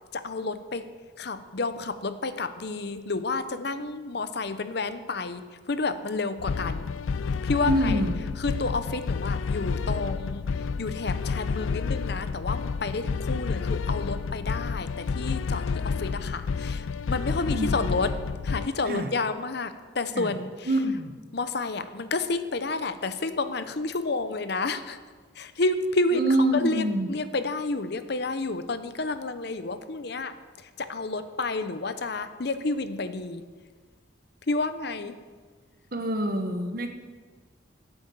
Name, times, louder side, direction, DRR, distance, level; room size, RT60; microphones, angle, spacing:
voice 1, 0.1-0.8 1.2-5.4 5.7-6.8 7.4-8.0 8.4-10.4 10.8-18.1 18.4-20.7 21.3-25.0 25.4-30.3 30.8-33.4 34.5-35.2, left 3 dB, 55° left, 11 dB, 0.7 m, -30 dB
sound 1, 6.4-18.7, left 5 dB, 80° left, 0.4 m, -30 dB
voice 2, 7.6-8.2 17.4-17.7 18.8-19.1 20.1-20.3 20.6-21.1 26.1-27.1 35.9-36.9, right 1 dB, 45° right, 6 dB, 1.2 m, -26 dB
12.0 x 8.7 x 7.9 m, 1.5 s
head